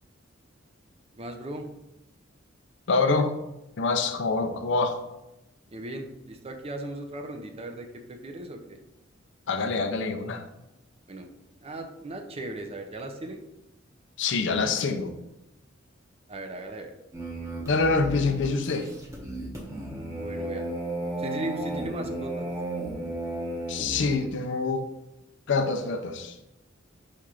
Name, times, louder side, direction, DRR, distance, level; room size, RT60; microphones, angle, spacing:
voice 1, 1.2-1.7 5.7-8.8 11.1-11.3 11.6-13.4 16.3-16.9 20.1-20.6 21.2-22.5, right 2 dB, 30° right, 4 dB, 0.5 m, -37 dB
voice 2, 2.9-3.3 3.8-5.0 9.5-10.4 14.2-15.1 17.7-18.9 23.7-24.9 25.5-26.3, left 3 dB, 65° left, 7 dB, 0.5 m, -25 dB
Low bass beat, 17.1-24.2, right 1 dB, 15° right, 0.9 m, -34 dB
4.3 x 2.5 x 4.7 m, 0.92 s
head